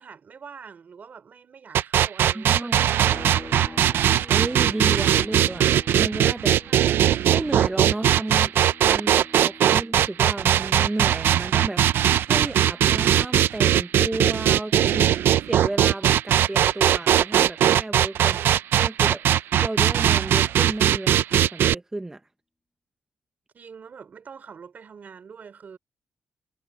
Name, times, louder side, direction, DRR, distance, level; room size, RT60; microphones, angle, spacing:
voice 1, 0.0-3.8 6.6-7.1 14.8-15.3 18.2-18.6 23.5-25.8, right 6 dB, 50° right, 3.4 m, -45 dB
sound 1, 1.7-21.7, right 11 dB, 85° right, 0.4 m, -20 dB
voice 2, 2.3-3.1 4.1-6.6 7.3-8.5 8.8-18.4 18.8-22.2, right 2 dB, 15° right, 0.8 m, -32 dB
sound 2, 3.1-16.7 17.0-19.2, left 2 dB, 20° left, 3.4 m, -48 dB
cardioid pair, 115°, 4 cm